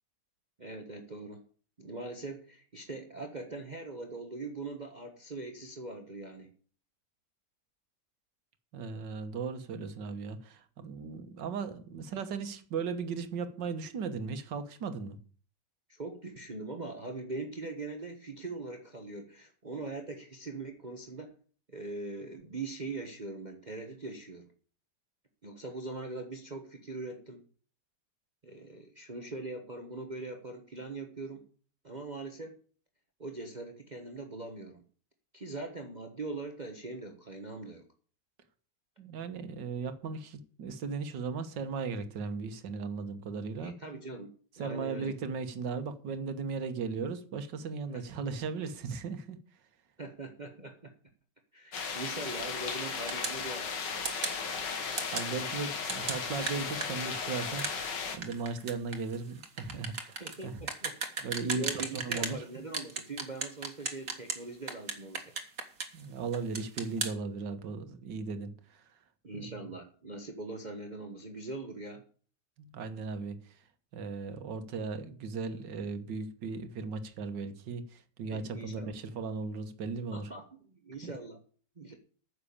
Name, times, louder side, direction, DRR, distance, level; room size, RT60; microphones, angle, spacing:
voice 1, 0.6-1.4 1.8-6.5 15.9-21.3 21.7-24.5 25.4-27.4 28.4-31.4 31.8-32.6 33.2-34.8 35.3-37.8 43.6-45.1 47.9-48.0 50.0-50.9 51.5-53.7 60.2-60.9 61.5-65.3 69.2-72.0 78.3-79.0 80.1-81.4 81.8-82.0, right 3 dB, 30° right, 1.3 m, -41 dB
voice 2, 8.7-15.2 39.0-43.7 44.6-49.4 55.1-57.7 58.1-60.6 61.2-61.7 61.9-62.4 65.9-68.8 69.3-69.5 72.6-73.4 73.9-80.3 81.0-81.1, right 5 dB, 90° right, 1.9 m, -37 dB
sound 1, 51.7-58.2, left 5 dB, 90° left, 2.2 m, -36 dB
sound 2, 53.1-53.4 54.0-54.4 55.0-55.3 55.9-62.4 62.7-64.4 64.7-66.0 66.3-67.1, right 5 dB, 50° right, 2.0 m, -36 dB
9.9 x 6.8 x 8.6 m
omnidirectional pair, 1.9 m